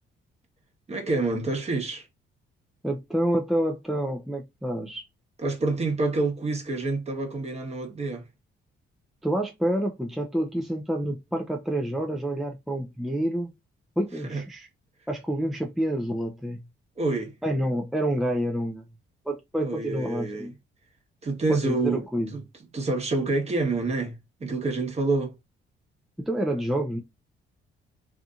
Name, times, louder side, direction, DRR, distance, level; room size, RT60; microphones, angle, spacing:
voice 1, 0.9-2.1 5.4-8.3 14.2-14.4 17.0-17.3 19.6-20.5 21.2-22.0 22.3-22.4 22.7-25.4, right 3 dB, 30° right, 1.1 m, -27 dB
voice 2, 2.8-5.0 9.2-13.5 14.0-14.7 15.1-16.6 17.4-18.8 19.3-20.5 21.5-22.3 26.2-27.0, right 1 dB, ahead, 0.4 m, -28 dB
2.7 x 2.5 x 2.4 m
cardioid pair, 90°, 20 cm